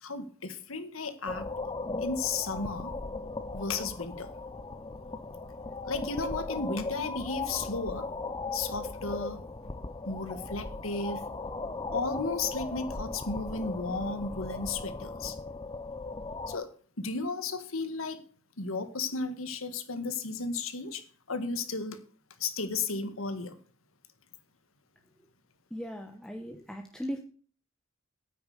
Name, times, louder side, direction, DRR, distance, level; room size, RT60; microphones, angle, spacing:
voice 1, 0.0-1.5 2.0-2.9 3.5-4.3 5.8-8.1 8.5-9.4 10.1-11.2 11.9-15.4 16.5-16.7 17.0-18.2 18.6-21.0 21.3-22.0 22.4-23.6, left 3 dB, 80° left, 10 dB, 1.8 m, -34 dB
sound 1, 1.3-16.6, left 3 dB, 20° left, 0.6 m, -37 dB
voice 2, 25.7-27.2, equal, 5° left, 3 dB, 1.0 m, -38 dB
9.8 x 8.9 x 6.6 m, 0.43 s
head